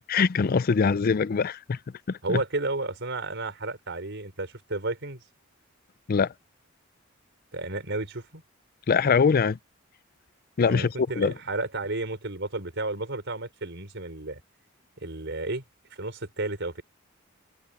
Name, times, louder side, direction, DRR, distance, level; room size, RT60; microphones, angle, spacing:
voice 1, 0.0-1.8 2.1-2.4 6.1-6.3 8.9-9.6 10.6-11.3, left 5 dB, 45° left, 0.4 m, -23 dB
voice 2, 2.2-5.2 7.5-8.4 10.7-14.4 15.0-15.6 15.9-16.8, right 2 dB, 60° right, 4.6 m, -32 dB
head